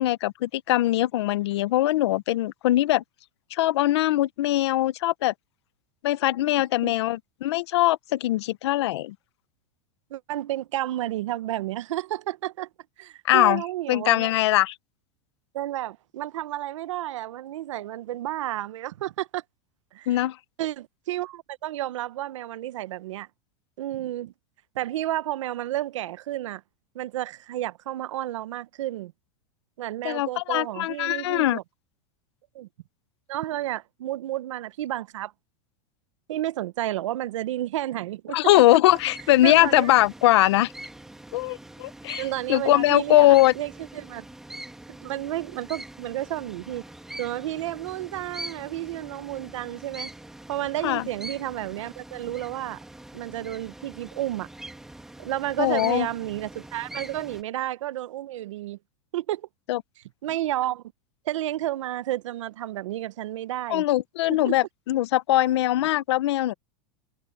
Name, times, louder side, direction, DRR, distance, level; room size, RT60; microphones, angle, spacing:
voice 1, 0.0-3.0 3.5-5.3 6.0-9.1 13.3-13.6 13.9-14.7 20.1-20.4 30.0-31.6 38.3-40.7 41.3-43.5 50.8-51.0 55.6-56.1 59.7-59.8 63.7-66.5, left 15 dB, 60° left, 0.9 m, -21 dB
voice 2, 10.1-12.7 13.0-14.3 15.5-19.4 19.9-20.3 20.6-23.3 23.8-24.3 24.7-26.6 26.9-29.1 29.8-31.6 32.5-32.7 33.3-35.3 36.3-38.4 39.4-39.9 42.2-44.2 45.0-46.8 47.2-50.1 50.5-52.8 53.1-54.5 55.2-58.8 59.1-59.5 60.2-60.8 61.2-63.8 64.3-64.6, right 14 dB, 85° right, 0.9 m, -31 dB
sound 1, 38.9-57.4, right 1 dB, 5° right, 1.4 m, -43 dB
supercardioid pair, 170°, 16 cm